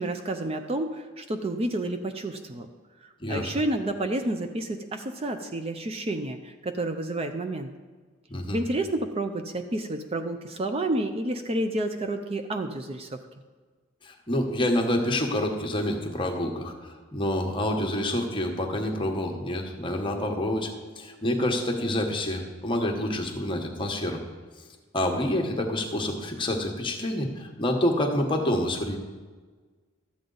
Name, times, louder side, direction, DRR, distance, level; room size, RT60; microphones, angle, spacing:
voice 1, 0.0-2.7 3.3-7.7 8.5-13.2, right 1 dB, 30° right, 6 dB, 0.5 m, -30 dB
voice 2, 8.3-8.6 14.0-20.7 21.0-24.2 24.9-29.0, left 1 dB, 25° left, 2 dB, 1.1 m, -27 dB
12.5 x 7.8 x 3.9 m, 1.4 s
head